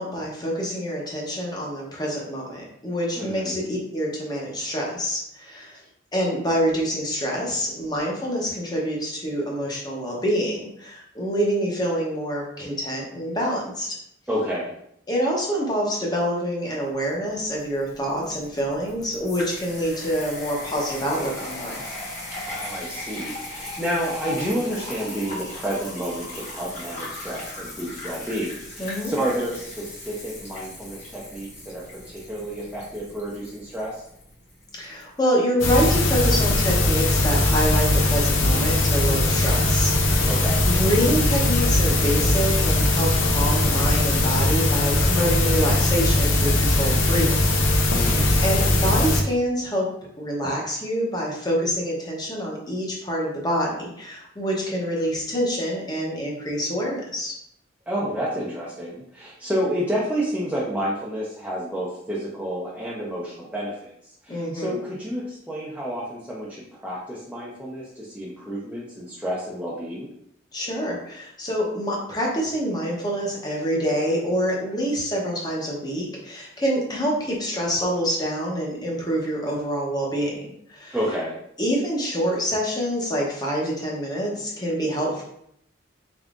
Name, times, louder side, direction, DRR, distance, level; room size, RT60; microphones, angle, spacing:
voice 1, 0.0-5.8 6.1-14.0 15.1-22.0 28.8-29.1 34.7-40.3 40.6-47.4 47.9-49.9 50.2-57.3 64.3-64.8 70.5-80.3 80.7-81.0 81.6-85.2, equal, 20° left, -2 dB, 0.8 m, -26 dB
voice 2, 3.2-3.5 14.3-14.7 22.4-34.0 40.3-40.7 47.9-48.4 57.9-63.9 64.2-70.1 80.9-81.4, equal, 5° right, -6 dB, 0.6 m, -30 dB
sound 1, 17.1-35.1, left 1 dB, 40° left, 1.3 m, -38 dB
sound 2, 35.6-49.2, left 1 dB, 80° left, 0.6 m, -20 dB
3.8 x 3.6 x 2.5 m, 0.74 s
head